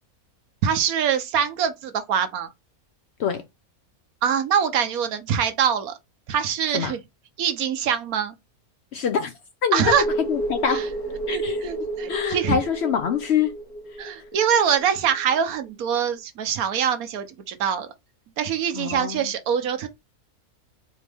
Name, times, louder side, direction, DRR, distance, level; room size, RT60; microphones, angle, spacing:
voice 1, 0.6-2.5 4.2-5.9 6.3-7.0 7.4-8.3 9.7-10.0 10.6-10.8 11.3-12.6 14.0-17.9 18.4-19.9, right 8 dB, 80° right, 1.2 m, -24 dB
voice 2, 8.9-9.3 9.6-10.9 11.3-13.5 18.7-19.3, left 7 dB, 65° left, 0.7 m, -25 dB
sound 1, 9.8-15.1 15.3-15.4, right 2 dB, 85° left, 1.7 m, -31 dB
4.3 x 2.7 x 3.4 m
omnidirectional pair, 1.5 m